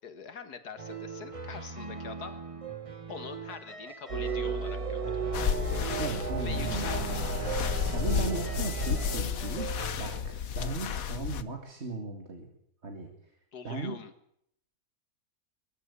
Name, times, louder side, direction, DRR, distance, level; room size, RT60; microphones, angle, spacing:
voice 1, 0.0-2.4 3.1-5.2 6.4-7.2 7.7-7.9 13.5-14.1, left 6 dB, 90° left, 10 dB, 2.3 m, -44 dB
sound 1, 0.8-10.2, right 5 dB, 25° right, 1.3 m, -41 dB
sound 2, 4.1-9.2, right 4 dB, 75° right, 2.1 m, -35 dB
sound 3, 5.3-11.4, left 8 dB, 65° left, 1.4 m, -32 dB
voice 2, 6.0-7.3 7.9-12.5 12.8-13.1 13.6-14.0, right 4 dB, 45° right, 4 dB, 2.5 m, -37 dB
22.0 x 15.0 x 8.4 m, 0.72 s
omnidirectional pair, 1.6 m